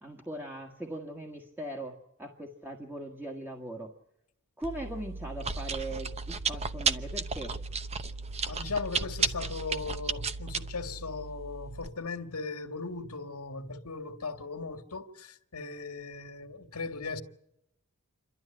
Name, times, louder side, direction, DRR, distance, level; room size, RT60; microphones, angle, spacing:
voice 1, 0.0-3.9 4.6-7.5, right 1 dB, 10° right, 1.6 m, -40 dB
Chewing mastication, 4.6-11.9, right 5 dB, 30° right, 0.8 m, -34 dB
voice 2, 8.5-17.2, left 4 dB, 80° left, 1.9 m, -38 dB
28.0 x 12.5 x 9.9 m
head